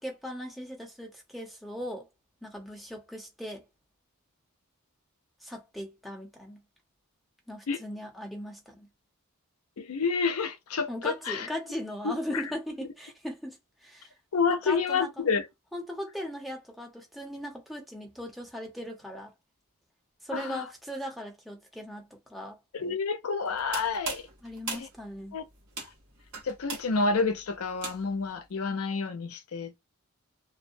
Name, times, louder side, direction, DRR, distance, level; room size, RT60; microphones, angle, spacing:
voice 1, 0.0-2.1 2.4-3.7 5.4-6.6 7.5-8.9 10.9-13.6 13.8-14.1 14.7-15.1 15.7-19.3 20.2-22.6 24.4-25.4, equal, ahead, 0.6 m, -38 dB
voice 2, 9.8-11.5 12.0-12.4 14.3-15.5 20.3-20.6 22.7-24.3 24.7-24.9 25.3-25.4 25.8-25.9 26.4-29.8, left 4 dB, 75° left, 0.5 m, -29 dB
sound 1, 23.4-28.3, right 4 dB, 75° right, 1.1 m, -40 dB
2.4 x 2.1 x 2.6 m
head